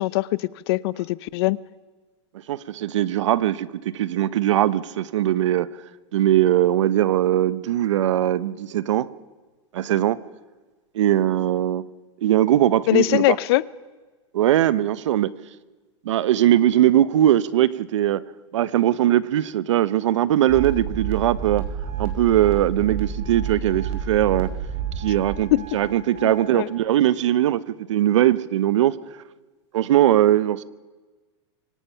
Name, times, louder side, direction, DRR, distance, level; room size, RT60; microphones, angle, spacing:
voice 1, 0.0-1.6 12.9-13.6 25.5-25.6 26.2-26.7, left 18 dB, 55° left, 0.7 m, -22 dB
voice 2, 2.5-5.7 6.1-9.1 9.7-10.2 10.9-11.8 12.2-13.4 14.3-15.3 16.0-18.2 18.5-21.6 22.0-24.5 25.0-28.9 29.7-30.6, right 12 dB, 80° right, 0.8 m, -20 dB
sound 1, 20.5-26.7, right 8 dB, 40° right, 4.7 m, -30 dB
25.0 x 18.5 x 5.7 m
supercardioid pair, 140°, 15 cm